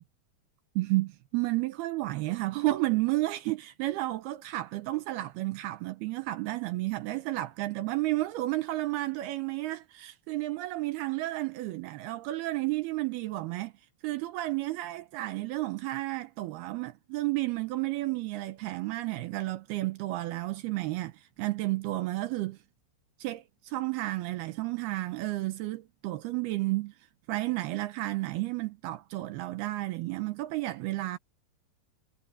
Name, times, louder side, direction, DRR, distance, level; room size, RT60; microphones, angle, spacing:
voice 1, 0.8-13.7 14.0-22.6 23.2-26.9 27.3-31.2, right 18 dB, 75° right, 2.7 m, -32 dB
omnidirectional pair, 4.8 m